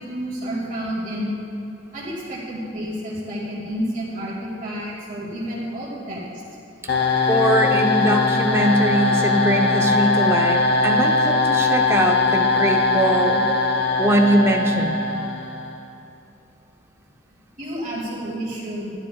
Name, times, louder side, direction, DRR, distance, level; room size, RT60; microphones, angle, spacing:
voice 1, 0.0-1.3 1.9-6.2 17.6-18.9, equal, 45° right, -6 dB, 2.1 m, -30 dB
sound 1, 6.9-15.8, left 3 dB, 55° left, 0.7 m, -20 dB
voice 2, 7.3-13.5 14.0-15.0, right 1 dB, 15° right, 2 dB, 0.5 m, -21 dB
12.5 x 11.0 x 2.3 m, 2.8 s
head